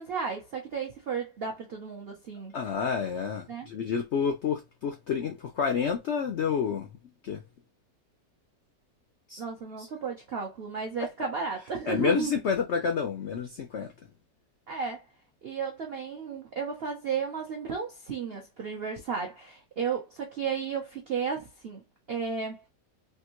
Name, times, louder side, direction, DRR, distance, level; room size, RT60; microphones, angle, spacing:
voice 1, 0.0-2.6 3.5-3.7 9.4-12.4 14.7-15.0 15.4-21.8 22.1-22.6, right 6 dB, 75° right, 0.5 m, -33 dB
voice 2, 2.5-6.9 7.2-7.4 9.3-9.4 9.8-9.9 11.9-13.9, left 6 dB, 90° left, 0.6 m, -29 dB
3.5 x 2.5 x 2.9 m
omnidirectional pair, 1.9 m